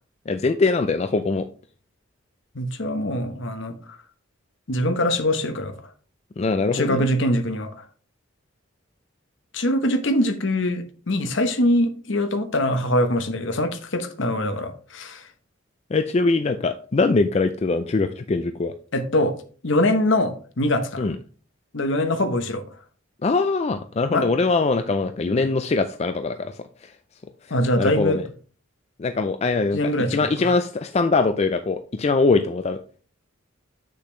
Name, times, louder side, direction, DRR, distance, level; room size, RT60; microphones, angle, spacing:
voice 1, 0.3-1.5 6.4-7.0 15.9-18.7 21.0-21.2 23.2-26.7 27.8-28.2 29.0-29.8 30.1-32.8, left 3 dB, 30° left, 0.4 m, -22 dB
voice 2, 2.5-3.7 4.7-5.7 6.7-7.7 9.5-15.2 18.9-19.3 19.6-21.1 21.7-22.6 24.1-24.3 25.3-25.5 27.5-28.2 29.7-30.5, left 1 dB, 65° left, 1.0 m, -23 dB
8.0 x 6.6 x 3.2 m
head